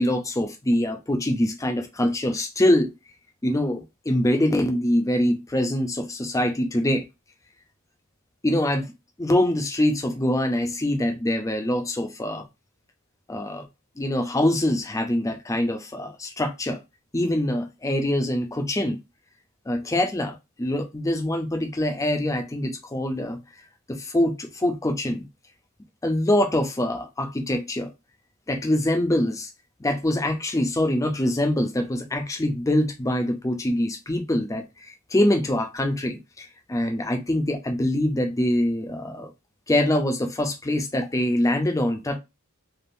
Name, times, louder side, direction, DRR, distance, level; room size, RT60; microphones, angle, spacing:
voice 1, 0.0-2.9 3.4-7.0 8.4-8.9 9.2-12.4 13.3-13.6 14.0-16.8 17.1-19.0 19.7-23.4 23.9-25.2 26.0-27.9 28.5-29.5 29.8-39.3 39.7-42.2, left 1 dB, 15° left, 0.5 m, -24 dB
3.4 x 2.4 x 2.6 m
head